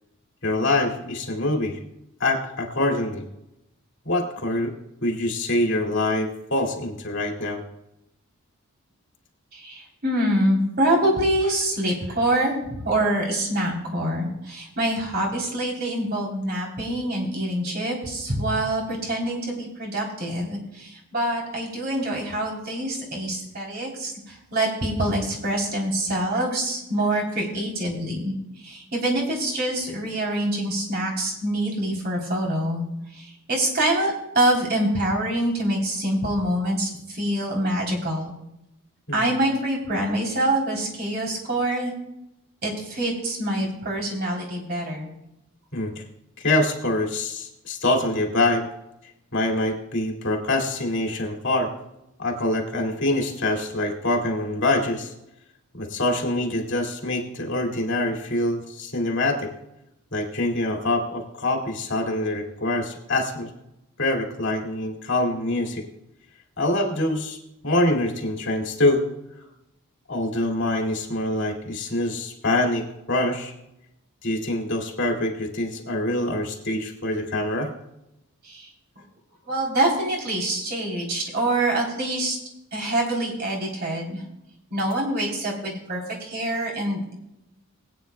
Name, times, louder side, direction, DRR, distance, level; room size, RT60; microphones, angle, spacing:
voice 1, 0.4-1.8 2.2-3.2 4.0-4.7 5.0-7.6 39.1-39.3 45.7-46.0 46.4-48.7 49.3-51.7 52.2-55.1 55.7-59.5 60.1-63.5 64.0-65.9 66.6-67.4 67.6-69.0 70.1-73.5 74.2-77.7, left 1 dB, 55° left, 1 dB, 2.2 m, -25 dB
voice 2, 9.5-32.8 33.1-38.3 39.1-41.9 42.6-45.1 78.4-78.7 79.5-82.4 82.7-84.2 84.7-87.1, right 1 dB, 45° right, -1 dB, 3.3 m, -25 dB
20.5 x 9.3 x 2.2 m, 0.86 s
head